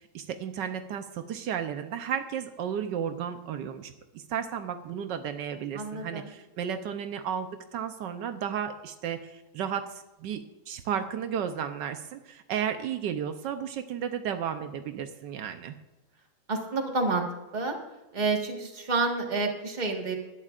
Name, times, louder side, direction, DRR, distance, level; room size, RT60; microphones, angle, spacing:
voice 1, 0.0-15.7, right 8 dB, 80° right, 8 dB, 1.4 m, -33 dB
voice 2, 5.7-6.3 16.5-17.2 17.5-17.8 18.1-20.2, right 3 dB, 25° right, 2 dB, 1.6 m, -29 dB
20.0 x 11.0 x 2.5 m, 1.1 s
omnidirectional pair, 1.9 m